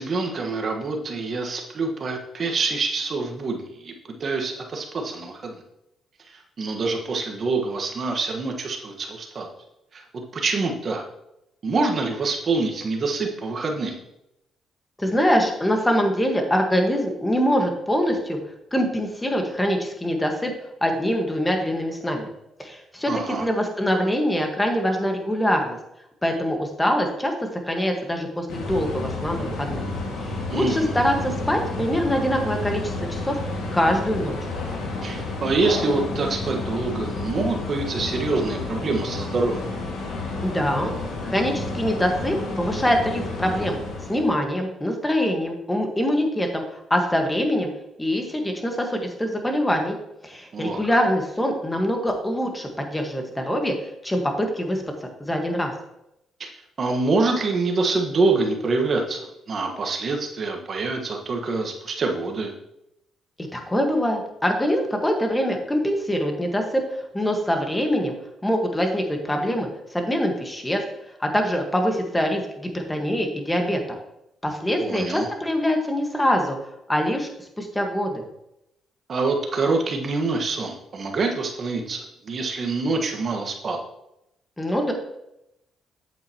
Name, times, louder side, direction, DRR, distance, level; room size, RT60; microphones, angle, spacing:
voice 1, 0.0-3.9 4.2-5.6 6.6-9.5 9.9-10.0 10.3-11.0 11.6-14.0 23.1-23.5 30.5-30.9 35.0-39.7 50.5-50.8 56.4-56.5 56.8-62.5 74.8-75.3 79.1-83.8, right 3 dB, 45° right, 2 dB, 1.4 m, -25 dB
voice 2, 15.0-18.4 18.7-20.5 20.8-22.2 22.6-25.8 26.2-27.3 27.7-29.8 30.2-33.4 33.7-34.4 40.4-40.9 41.2-43.8 44.1-47.7 48.0-49.9 50.2-53.7 54.0-54.8 55.2-55.7 63.5-66.8 67.1-68.1 68.4-70.8 71.2-73.8 74.4-76.6 76.9-78.2 84.6-84.9, equal, 10° left, 3 dB, 1.5 m, -24 dB
sound 1, 28.5-44.4, left 2 dB, 85° left, 2.0 m, -31 dB
8.5 x 7.6 x 3.0 m, 0.85 s
cardioid pair, 90°, 0 cm